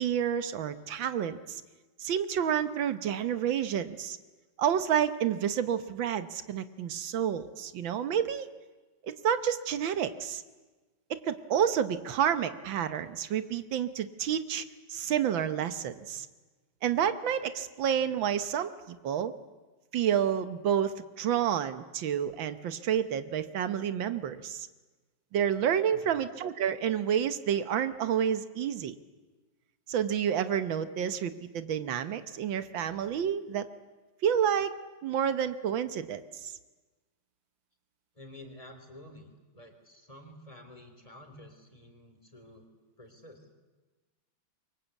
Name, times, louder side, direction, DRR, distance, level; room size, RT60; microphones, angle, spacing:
voice 1, 0.0-1.6 2.0-4.2 4.6-8.5 9.0-10.4 11.1-14.6 14.9-16.3 16.8-19.3 19.9-24.7 25.3-28.9 29.9-33.7 34.2-34.7 35.0-36.5, right 9 dB, 85° right, 12 dB, 1.8 m, -29 dB
voice 2, 25.9-26.3 38.1-42.7 43.0-43.5, left 1 dB, 20° left, 5 dB, 3.5 m, -51 dB
27.0 x 23.5 x 8.2 m, 1.2 s
omnidirectional pair, 2.1 m